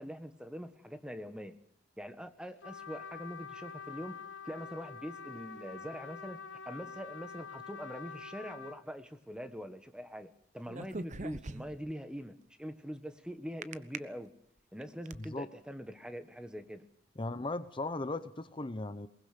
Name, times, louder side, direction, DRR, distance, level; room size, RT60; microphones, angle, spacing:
voice 1, 0.0-1.5 2.0-4.2 4.4-14.3 14.7-16.8, equal, 5° right, 10 dB, 1.4 m, -43 dB
Trumpet, 2.6-8.8, left 6 dB, 80° left, 1.7 m, -46 dB
sound 1, 10.7-11.9 13.6-14.0 14.6-15.2, right 3 dB, 40° right, 0.9 m, -41 dB
voice 2, 17.2-19.1, left 2 dB, 25° left, 12 dB, 0.8 m, -37 dB
22.0 x 19.5 x 6.7 m, 0.69 s
head